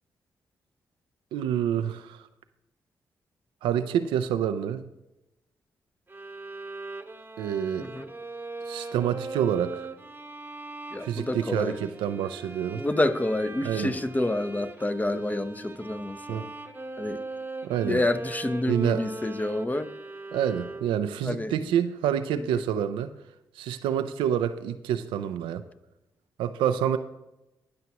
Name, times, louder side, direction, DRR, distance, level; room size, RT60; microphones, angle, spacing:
voice 1, 1.3-2.2 3.6-4.9 7.4-7.9 8.7-9.9 11.0-12.8 13.6-13.9 16.3-16.5 17.6-18.0 18.7-19.0 20.3-23.1 23.6-25.6 26.4-27.0, right 9 dB, 85° right, 0.5 m, -27 dB
sound 1, 6.1-21.2, right 3 dB, 25° right, 0.9 m, -40 dB
voice 2, 10.9-11.8 12.7-16.5 17.0-17.2 17.8-19.9 21.2-21.5 22.5-22.6, left 1 dB, 20° left, 0.8 m, -28 dB
16.5 x 5.9 x 3.0 m
supercardioid pair, 45°, 8 cm